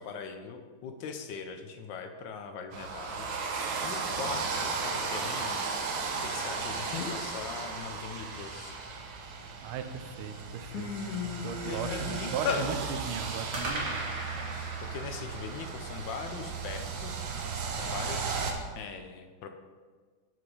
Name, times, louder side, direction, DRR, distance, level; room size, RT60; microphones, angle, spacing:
voice 1, 0.0-5.7 6.2-8.7 11.6-12.7 14.4-14.6 14.9-17.1 17.8-19.5, left 6 dB, 70° left, 6 dB, 1.3 m, -41 dB
sound 1, 2.7-18.5, right 5 dB, 70° right, 1.6 m, -35 dB
sound 2, 6.0-7.7 13.5-17.8, right 1 dB, 45° right, 2.1 m, -41 dB
sound 3, 6.6-6.7 6.9-7.3 7.8-9.4 9.9-10.1 10.4-12.6, left 6 dB, 85° left, 1.6 m, -35 dB
voice 2, 9.6-10.9 11.2-14.0, right 7 dB, 85° right, 9 dB, 1.5 m, -37 dB
7.4 x 6.0 x 4.8 m, 1.5 s
omnidirectional pair, 2.3 m